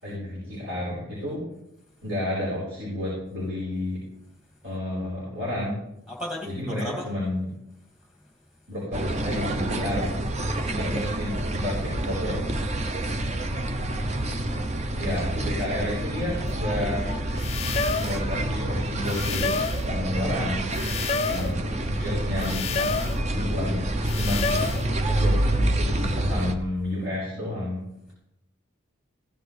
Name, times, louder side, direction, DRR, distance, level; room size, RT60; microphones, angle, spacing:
voice 1, 0.0-1.4 2.0-4.0 4.6-5.8 6.5-7.5 8.7-10.2 10.6-12.5 15.0-17.1 18.0-20.7 21.3-22.9 23.2-24.8 25.1-27.8, left 1 dB, 65° right, -7 dB, 4.7 m, -31 dB
voice 2, 6.1-7.1 10.6-10.8 11.1-11.2 13.8-14.3 21.9-22.2, left 1 dB, 5° right, -1 dB, 2.1 m, -37 dB
sound 1, 8.9-26.5, right 1 dB, 35° right, 0.6 m, -27 dB
sound 2, 16.5-16.6 17.4-18.2 19.0-19.9 20.7-21.5 22.4-23.2 24.0-24.9, left 5 dB, 30° left, 0.3 m, -29 dB
15.5 x 10.0 x 3.3 m, 0.82 s
head